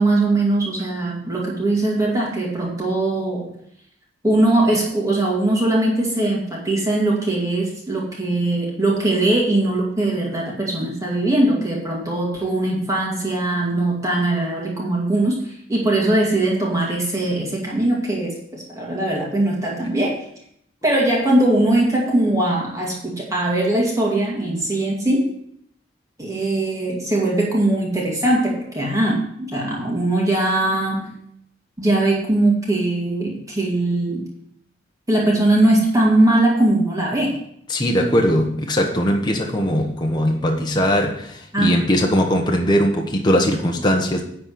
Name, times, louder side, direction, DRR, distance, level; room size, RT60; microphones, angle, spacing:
voice 1, 0.0-3.5 4.2-20.2 20.8-25.3 26.2-31.1 31.8-34.2 35.1-37.4 41.5-41.8, right 1 dB, 20° right, -4 dB, 2.2 m, -20 dB
voice 2, 37.7-44.2, equal, 25° left, 1 dB, 1.2 m, -20 dB
11.0 x 4.2 x 7.5 m, 0.69 s
head